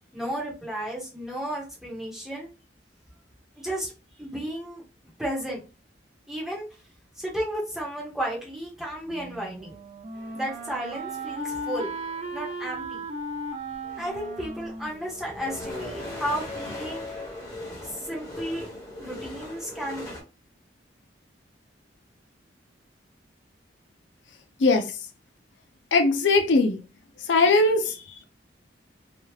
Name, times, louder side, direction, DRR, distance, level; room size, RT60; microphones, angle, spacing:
voice 1, 0.1-2.5 3.6-3.9 4.2-4.8 5.2-5.6 6.3-6.7 7.2-9.8 10.3-11.9 12.3-13.0 14.0-17.1 17.8-18.7 19.0-20.1, equal, ahead, 1.0 m, -33 dB
Wind instrument woodwind instrument, 9.1-16.0, right 1 dB, 35° right, 0.4 m, -36 dB
sound 1, 10.1-12.4 13.3-13.4 13.7-20.2, left 1 dB, 20° left, 1.2 m, -40 dB
voice 2, 24.6-25.0 25.9-26.8 27.3-28.0, left 3 dB, 80° left, 0.5 m, -20 dB
2.9 x 2.3 x 3.2 m
head